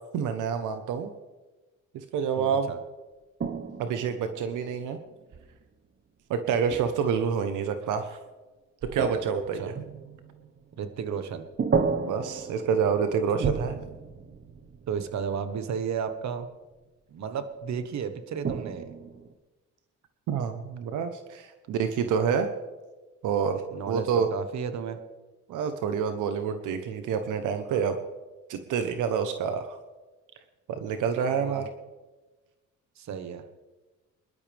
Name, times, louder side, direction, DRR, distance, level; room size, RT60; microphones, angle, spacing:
voice 1, 0.1-1.1 1.9-2.7 3.8-5.0 6.3-8.2 8.8-9.7 12.1-13.7 20.3-22.5 23.2-24.3 25.5-28.0 28.5-29.8 30.7-31.7, right 6 dB, 85° right, 7 dB, 1.1 m, -28 dB
voice 2, 2.4-2.8 9.6-9.8 10.8-11.5 13.4-13.5 14.9-16.5 17.1-18.9 23.7-25.0 31.3-31.7 33.0-33.5, right 7 dB, 65° right, 9 dB, 1.4 m, -33 dB
sound 1, 3.4-5.6 6.7-7.2 8.8-11.2 11.6-15.8 18.4-19.3, right 5 dB, 40° right, 1.3 m, -33 dB
23.0 x 12.0 x 3.5 m, 1.2 s
cardioid pair, 90°, 30 cm